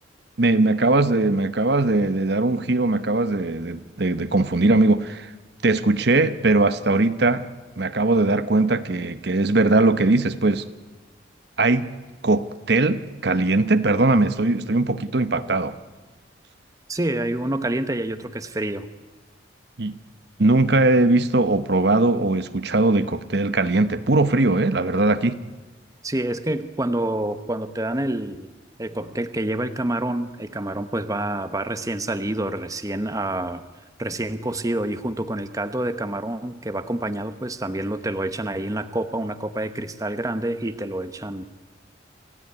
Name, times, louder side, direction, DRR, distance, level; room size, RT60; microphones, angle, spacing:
voice 1, 0.4-5.3 5.6-7.5 7.8-10.7 11.6-11.9 12.2-15.8 19.8-19.9 20.4-25.4, right 2 dB, 60° right, 1.0 m, -20 dB
voice 2, 16.9-18.9 26.0-28.5 28.8-33.6 34.0-41.4, right 1 dB, 20° right, 1.0 m, -27 dB
28.0 x 16.0 x 9.6 m
head